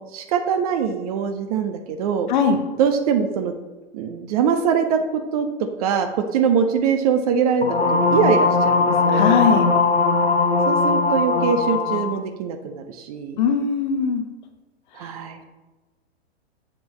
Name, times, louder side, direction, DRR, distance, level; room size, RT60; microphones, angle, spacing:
voice 1, 0.0-2.3 2.8-3.5 3.9-5.1 5.3-5.5 5.8-9.3 10.7-13.4 15.0-15.4, right 6 dB, 35° right, 7 dB, 0.6 m, -22 dB
sound 1, 7.6-12.1, left 3 dB, 80° left, 0.8 m, -19 dB
voice 2, 9.1-9.6 13.4-14.2, left 6 dB, 45° left, 6 dB, 1.0 m, -19 dB
7.3 x 7.0 x 3.2 m, 1.2 s
figure-of-eight pair, 100°, 33 cm